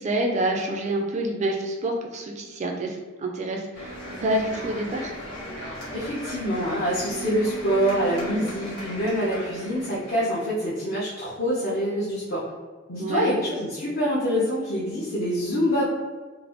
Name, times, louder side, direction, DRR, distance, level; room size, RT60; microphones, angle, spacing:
voice 1, 0.0-5.1 13.0-13.3, right 1 dB, 35° right, 2 dB, 0.4 m, -27 dB
sound 1, 3.7-10.5, right 1 dB, 85° left, 1.4 m, -37 dB
voice 2, 5.9-12.4 12.9-15.8, equal, 45° left, -9 dB, 0.7 m, -25 dB
3.9 x 2.0 x 2.9 m, 1.3 s
head